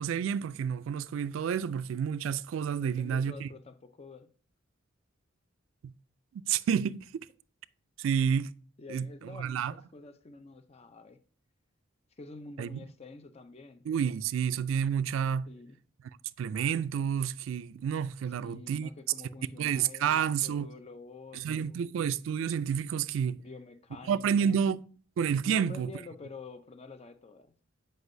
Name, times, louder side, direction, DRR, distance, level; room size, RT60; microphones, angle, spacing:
voice 1, 0.0-3.5 5.8-5.9 6.5-7.3 8.0-8.5 8.9-9.7 12.6-12.7 13.9-15.5 16.4-18.9 19.6-20.7 21.3-23.4 24.1-24.8 25.2-25.9, right 7 dB, 90° right, 0.3 m, -29 dB
voice 2, 2.8-4.3 8.8-11.2 12.2-13.9 15.5-15.8 18.3-21.9 23.4-24.7 25.5-27.6, left 3 dB, 30° left, 0.5 m, -48 dB
7.9 x 5.2 x 2.6 m
head